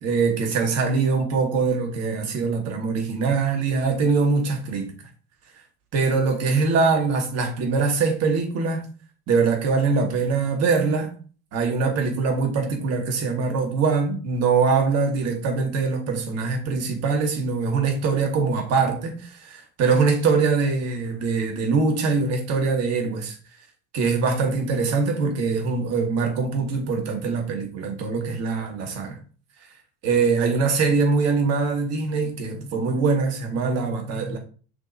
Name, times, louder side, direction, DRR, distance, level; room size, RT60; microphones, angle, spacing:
voice 1, 0.0-4.9 5.9-8.9 9.3-11.1 11.5-23.3 23.9-29.2 30.0-34.4, right 4 dB, 50° right, 1.4 m, -23 dB
6.5 x 3.0 x 2.7 m
hypercardioid pair, 75°, 33 cm